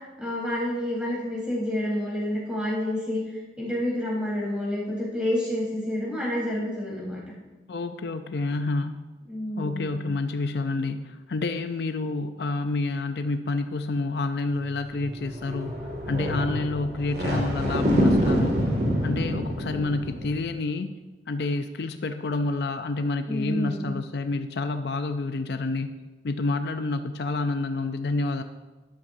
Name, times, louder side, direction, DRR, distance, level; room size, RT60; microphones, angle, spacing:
voice 1, 0.2-7.2 9.3-10.0 23.3-23.9, left 1 dB, 5° right, -6 dB, 3.8 m, -29 dB
voice 2, 7.7-9.0 9.6-15.8 16.1-18.7 19.0-20.9 21.3-28.4, left 3 dB, 65° left, 8 dB, 0.5 m, -28 dB
sound 1, 14.7-20.4, equal, 60° right, 2.1 m, -26 dB
12.5 x 11.0 x 2.6 m, 1.2 s
head